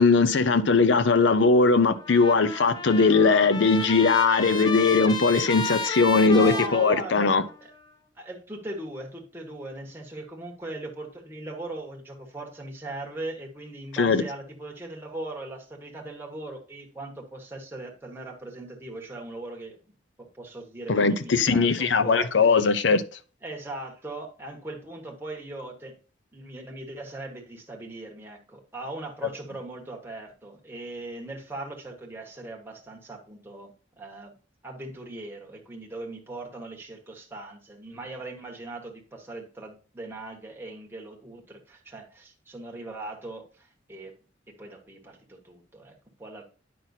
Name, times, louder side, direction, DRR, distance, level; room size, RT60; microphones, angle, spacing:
voice 1, 0.0-7.4 14.0-14.2 20.9-23.0, left 4 dB, 75° left, 0.6 m, -20 dB
Trumpet, 2.0-7.6, left 3 dB, 25° left, 0.6 m, -33 dB
voice 2, 6.2-7.7 8.2-19.8 20.2-22.4 23.4-26.0 26.3-34.3 34.6-44.1 44.5-46.4, right 2 dB, 10° right, 1.3 m, -39 dB
9.3 x 5.8 x 2.7 m
head